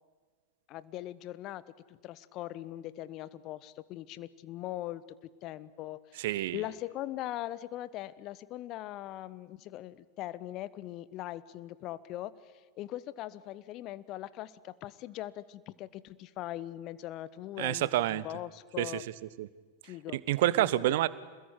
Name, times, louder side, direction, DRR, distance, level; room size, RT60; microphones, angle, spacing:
voice 1, 0.7-1.6 1.9-5.0 5.4-19.0 19.8-20.2 20.9-21.0, left 14 dB, 40° left, 18 dB, 1.1 m, -41 dB
voice 2, 6.2-6.6 17.6-18.3 18.8-19.0 19.4-19.5 20.3-21.1, right 15 dB, 55° right, 18 dB, 1.0 m, -28 dB
26.5 x 21.0 x 9.9 m, 1.4 s
figure-of-eight pair, 90°, 0 cm